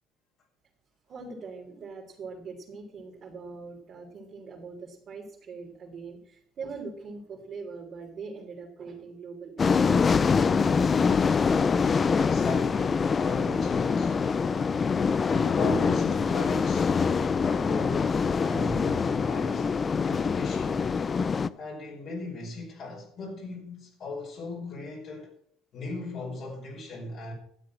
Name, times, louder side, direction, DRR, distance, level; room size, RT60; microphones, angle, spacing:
voice 1, 1.1-11.1, right 4 dB, 45° right, 3.8 m, -43 dB
sound 1, 9.6-21.5, left 5 dB, 30° left, 0.5 m, -24 dB
voice 2, 12.2-14.2 15.3-17.0 17.3-20.9 21.5-25.3 25.7-27.3, left 3 dB, 55° left, 5.6 m, -37 dB
13.0 x 7.7 x 7.4 m
supercardioid pair, 100°, 0 cm